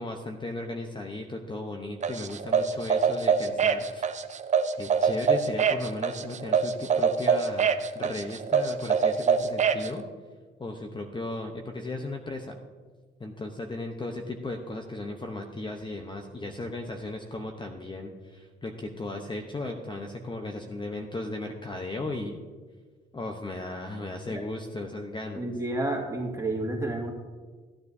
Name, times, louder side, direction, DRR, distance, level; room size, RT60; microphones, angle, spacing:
voice 1, 0.0-4.1 4.8-7.7 7.9-10.0 10.6-12.6 13.2-22.4 23.1-25.5, left 2 dB, 25° left, 3 dB, 0.9 m, -36 dB
sound 1, 2.0-9.9, right 6 dB, 35° right, 0.6 m, -24 dB
voice 2, 25.4-27.1, right 2 dB, 15° right, 0 dB, 2.2 m, -30 dB
15.5 x 9.6 x 2.7 m, 1.4 s
cardioid pair, 90°, 20 cm